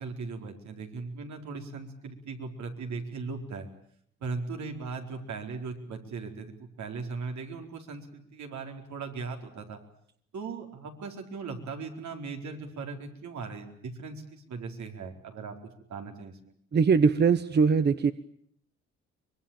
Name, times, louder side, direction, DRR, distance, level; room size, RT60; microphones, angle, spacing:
voice 1, 0.0-3.7 4.2-9.8 10.3-16.5, right 4 dB, 65° right, 3 dB, 4.3 m, -38 dB
voice 2, 16.7-18.1, right 5 dB, 35° right, 12 dB, 1.0 m, -21 dB
24.0 x 21.5 x 8.9 m, 0.67 s
cardioid pair, 90°, 30 cm